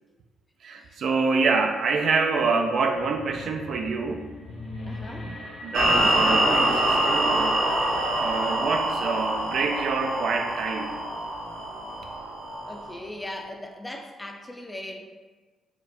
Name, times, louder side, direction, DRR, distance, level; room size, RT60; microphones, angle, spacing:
voice 1, 0.6-4.3 5.2-7.8 8.2-11.0, right 4 dB, 65° right, 4 dB, 0.3 m, -26 dB
sound 1, 2.9-8.6, left 1 dB, 60° left, 0.7 m, -41 dB
voice 2, 4.9-5.3 12.7-15.0, left 1 dB, 15° left, 3 dB, 0.4 m, -38 dB
sound 2, 5.7-12.9, right 1 dB, 80° right, 1.0 m, -25 dB
4.3 x 2.2 x 2.6 m, 1.3 s
cardioid pair, 90°, 0 cm